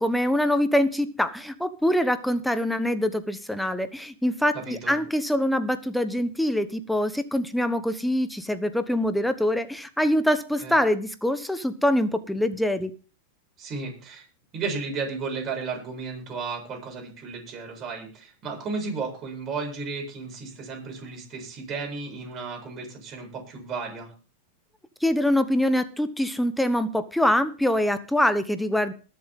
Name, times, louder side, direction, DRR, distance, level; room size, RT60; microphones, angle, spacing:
voice 1, 0.0-12.9 25.0-28.9, left 1 dB, 5° left, 11 dB, 1.1 m, -24 dB
voice 2, 4.5-5.0 10.6-10.7 13.6-14.3 14.5-24.1, right 4 dB, 35° right, 1 dB, 7.5 m, -34 dB
21.0 x 7.6 x 3.8 m, 0.37 s
hypercardioid pair, 105°, 0 cm